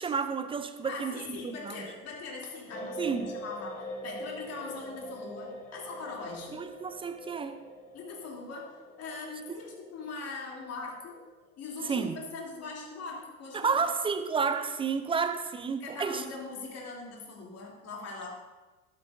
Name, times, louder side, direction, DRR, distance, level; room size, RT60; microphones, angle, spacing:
voice 1, 0.0-1.9 3.0-3.4 6.5-7.6 11.9-12.2 13.5-16.2, right 5 dB, 15° right, 0.4 m, -31 dB
voice 2, 0.8-6.6 7.9-11.3 11.6-13.8 15.8-18.3, left 3 dB, 35° left, 3.0 m, -41 dB
sound 1, 2.7-12.6 12.9-13.1, equal, 15° left, 2.4 m, -44 dB
12.5 x 12.0 x 2.6 m
figure-of-eight pair, 80°, 44 cm